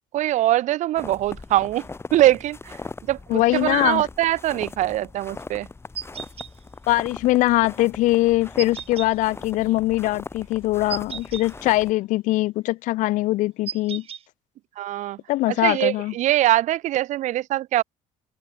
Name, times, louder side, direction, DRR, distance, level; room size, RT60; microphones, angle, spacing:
voice 1, 0.1-1.8 2.1-2.8 3.1-5.7 14.8-15.2 15.5-17.8, right 14 dB, 65° right, 1.0 m, -22 dB
sound 1, 1.0-11.9, left 3 dB, 20° left, 5.9 m, -40 dB
voice 2, 3.3-4.1 6.9-14.0 15.3-16.1, left 18 dB, 70° left, 0.6 m, -22 dB
sound 2, 6.0-6.5 8.6-9.1 10.9-11.5 13.7-14.2, right 9 dB, 45° right, 5.7 m, -34 dB
cardioid pair, 105°, 14 cm